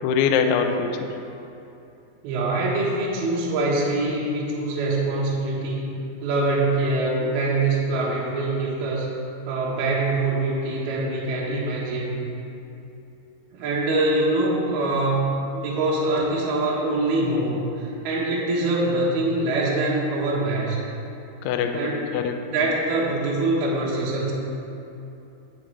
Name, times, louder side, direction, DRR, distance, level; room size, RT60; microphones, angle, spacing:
voice 1, 0.0-1.1 21.4-22.3, left 6 dB, 90° left, 5 dB, 2.3 m, -23 dB
voice 2, 2.2-5.9 6.2-9.1 9.5-12.2 13.5-20.8 21.7-21.9 22.5-24.3, right 2 dB, 65° right, -5 dB, 3.1 m, -24 dB
19.0 x 6.5 x 3.4 m, 2.8 s
omnidirectional pair, 5.5 m